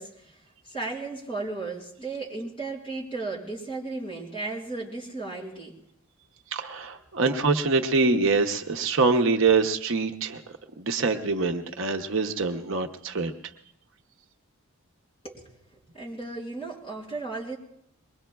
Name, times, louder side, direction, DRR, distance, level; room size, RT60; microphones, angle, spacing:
voice 1, 0.0-5.8 7.3-7.4 15.2-15.6 15.9-17.6, right 3 dB, 25° left, -4 dB, 4.0 m, -35 dB
voice 2, 6.5-13.3, right 4 dB, 60° right, 4 dB, 0.8 m, -25 dB
23.0 x 20.5 x 2.3 m, 0.73 s
head